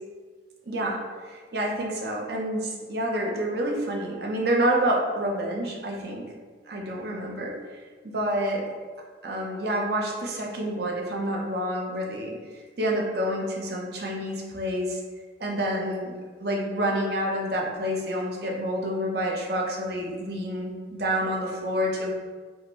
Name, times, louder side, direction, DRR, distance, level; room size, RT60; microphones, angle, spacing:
voice 1, 0.7-6.3 6.7-7.6 8.0-8.7 9.2-12.4 12.8-15.0 15.4-16.1 16.4-22.1, right 1 dB, 60° right, -1 dB, 0.8 m, -28 dB
5.6 x 2.6 x 3.0 m, 1.5 s
head